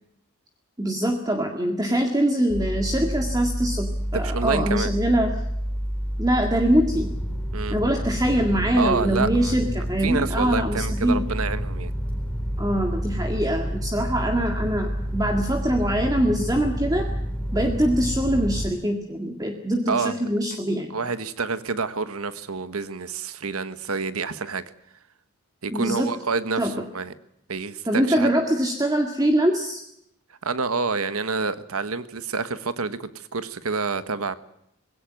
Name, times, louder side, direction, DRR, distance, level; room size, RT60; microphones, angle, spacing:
voice 1, 0.8-5.3 6.2-7.1 7.7-11.2 12.6-17.1 17.5-21.0 25.7-26.1 26.6-26.7 27.9-29.8, right 1 dB, 15° right, 3 dB, 2.0 m, -23 dB
sound 1, 2.5-18.7, equal, 5° left, 3.9 m, -29 dB
voice 2, 4.1-4.9 7.5-7.8 8.7-9.6 10.0-11.9 19.9-20.1 20.9-24.6 25.6-27.1 27.5-28.3 30.4-34.3, right 4 dB, 85° right, 12 dB, 1.3 m, -28 dB
21.0 x 17.5 x 9.2 m, 0.77 s
head